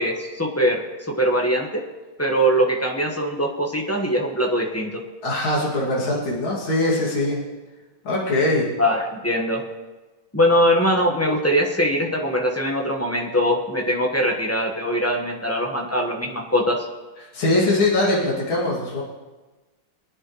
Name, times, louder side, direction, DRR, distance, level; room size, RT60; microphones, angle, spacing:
voice 1, 0.0-1.8 2.2-5.0 8.8-9.6 10.3-16.9, equal, 10° left, 1 dB, 1.0 m, -22 dB
voice 2, 5.2-7.4 8.1-8.7 17.3-19.0, left 2 dB, 75° left, -5 dB, 3.3 m, -21 dB
24.0 x 10.0 x 3.2 m, 1.2 s
omnidirectional pair, 2.3 m